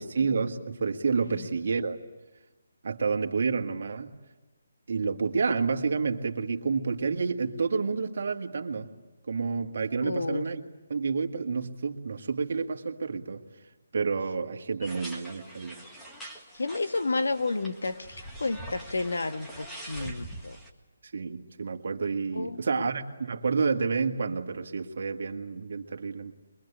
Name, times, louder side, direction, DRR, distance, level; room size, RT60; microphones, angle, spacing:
voice 1, 0.0-2.0 2.8-4.1 4.9-8.9 9.3-10.6 10.9-13.4 13.9-15.8 20.0-20.1 21.1-26.3, right 4 dB, 55° right, 5 dB, 1.9 m, -29 dB
voice 2, 10.0-10.4 16.5-20.6 22.3-22.9, left 3 dB, 90° left, 10 dB, 1.5 m, -31 dB
sound 1, 14.8-20.7, right 1 dB, 5° left, 1.8 m, -44 dB
23.0 x 22.5 x 10.0 m, 1.1 s
hypercardioid pair, 165°, 0 cm